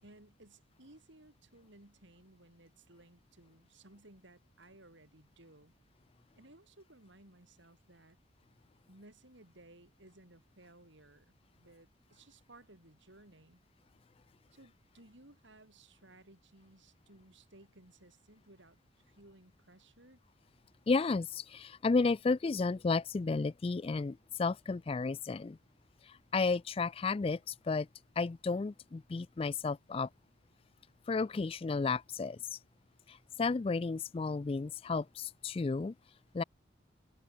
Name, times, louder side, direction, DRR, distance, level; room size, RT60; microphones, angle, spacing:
voice 1, 0.0-5.7 6.3-8.2 8.9-13.6 14.5-18.8 19.0-20.2, right 2 dB, 70° right, 4.2 m, -59 dB
voice 2, 20.9-25.6 26.0-27.9 28.2-30.1 31.1-32.6 33.1-35.9 36.3-36.4, left 4 dB, 30° left, 0.3 m, -33 dB
head